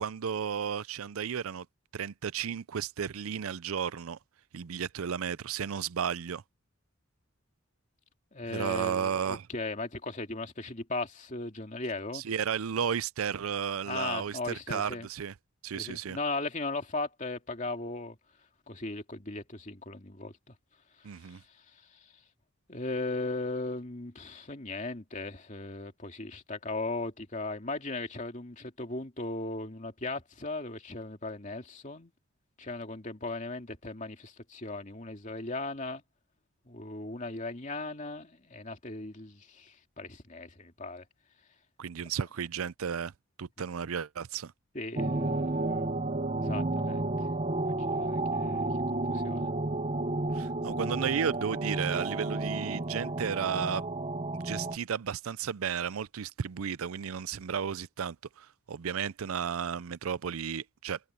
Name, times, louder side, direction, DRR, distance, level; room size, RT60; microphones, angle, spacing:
voice 1, 0.0-1.7 1.9-4.2 4.5-6.4 8.5-9.5 12.1-15.3 15.6-16.2 21.0-21.4 41.8-43.1 43.4-44.5 50.3-53.8 54.3-61.0, right 7 dB, 90° right, 0.5 m, -33 dB
voice 2, 8.3-12.2 13.9-15.1 15.7-18.2 18.7-20.5 21.2-21.4 22.7-32.1 32.6-36.0 36.7-41.0 44.7-45.9 46.4-47.3 47.6-49.5, left 2 dB, 35° left, 2.5 m, -37 dB
sound 1, 44.9-54.8, right 2 dB, 30° right, 0.8 m, -31 dB
head